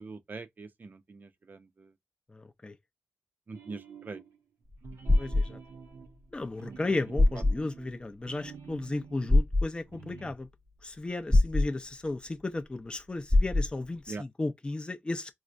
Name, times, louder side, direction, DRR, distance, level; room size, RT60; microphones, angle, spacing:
voice 1, 0.0-1.9 3.5-4.2 6.7-6.8 14.1-14.2, right 3 dB, 45° right, 0.5 m, -43 dB
voice 2, 2.3-2.8 5.2-5.6 6.3-10.5 10.8-15.3, left 2 dB, 20° left, 0.5 m, -35 dB
sound 1, 3.5-4.4 4.8-9.4 9.8-10.3, right 5 dB, 85° right, 0.6 m, -48 dB
sound 2, 4.7-5.5 6.8-6.9 7.2-7.6 9.3-9.6 11.3-11.7 13.3-13.7, left 2 dB, ahead, 0.9 m, -22 dB
4.4 x 2.0 x 2.5 m
cardioid pair, 75°, 4 cm